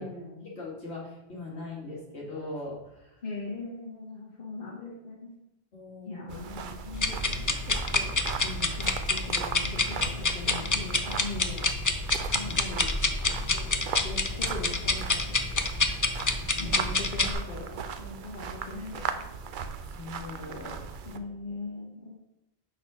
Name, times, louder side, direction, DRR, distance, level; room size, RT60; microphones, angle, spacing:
voice 1, 0.0-0.6 3.2-5.3 6.0-11.7 12.3-12.9 13.2-15.6 16.6-19.5 21.0-22.2, left 3 dB, 55° left, -3 dB, 1.5 m, -40 dB
voice 2, 0.5-3.2 5.7-6.4 12.5-12.6 16.4-16.9 20.0-20.8, left 2 dB, 80° left, -4 dB, 2.2 m, -40 dB
sound 1, 6.3-21.2, right 6 dB, 60° right, 0.7 m, -38 dB
sound 2, 6.9-17.3, left 3 dB, 30° left, 0.3 m, -28 dB
6.1 x 4.3 x 5.9 m, 0.94 s
omnidirectional pair, 1.1 m